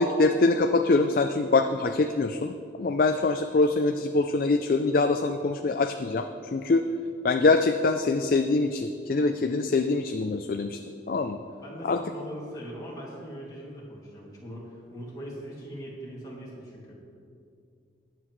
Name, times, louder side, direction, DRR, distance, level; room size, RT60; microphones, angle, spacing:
voice 1, 0.0-2.5 2.8-6.8 7.2-10.8 11.1-11.4 11.8-12.0, left 3 dB, 50° left, 7 dB, 0.4 m, -24 dB
voice 2, 11.6-16.9, equal, 20° left, -6 dB, 2.3 m, -41 dB
20.5 x 7.9 x 3.1 m, 2.4 s
head